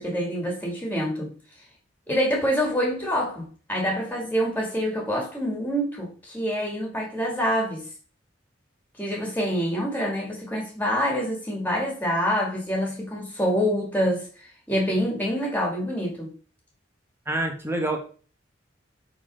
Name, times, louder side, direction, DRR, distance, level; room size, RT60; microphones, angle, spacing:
voice 1, 0.0-1.3 2.1-7.9 9.0-16.3, equal, 10° left, 2.5 m, -26 dB
voice 2, 17.3-18.0, right 1 dB, 15° right, 1.3 m, -26 dB
8.6 x 4.3 x 3.9 m
head